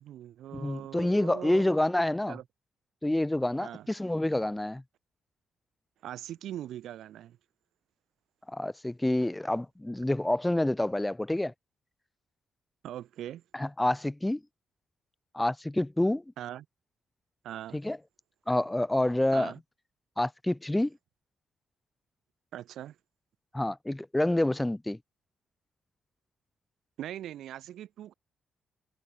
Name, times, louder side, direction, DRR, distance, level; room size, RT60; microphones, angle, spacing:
voice 1, 0.0-1.7 2.3-2.4 3.6-3.9 6.0-7.4 12.8-13.4 16.4-16.7 17.4-17.8 19.3-19.6 22.5-23.0 27.0-28.1, right 12 dB, 70° right, 1.8 m, -41 dB
voice 2, 0.5-2.4 3.0-4.8 8.5-11.5 13.5-14.4 15.3-16.2 17.7-18.0 18.5-19.5 20.2-21.0 23.5-25.0, left 1 dB, 10° left, 0.7 m, -28 dB
hypercardioid pair, 45°, 0 cm